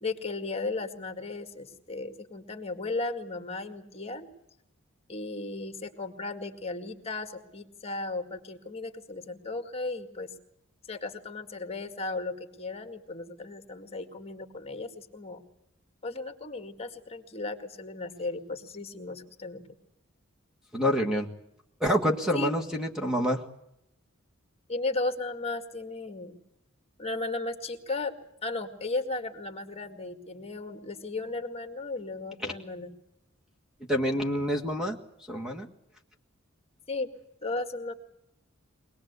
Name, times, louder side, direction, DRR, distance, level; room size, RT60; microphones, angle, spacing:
voice 1, 0.0-4.3 5.1-10.3 10.8-15.4 16.0-19.6 22.3-22.6 24.7-26.4 27.0-28.1 28.4-32.9 36.9-37.1 37.4-37.9, left 3 dB, 30° left, 7 dB, 2.1 m, -35 dB
voice 2, 20.7-21.3 21.8-23.4 32.4-32.5 33.9-35.0 35.3-35.7, equal, 5° right, 1 dB, 1.7 m, -27 dB
24.0 x 19.0 x 8.2 m, 0.81 s
head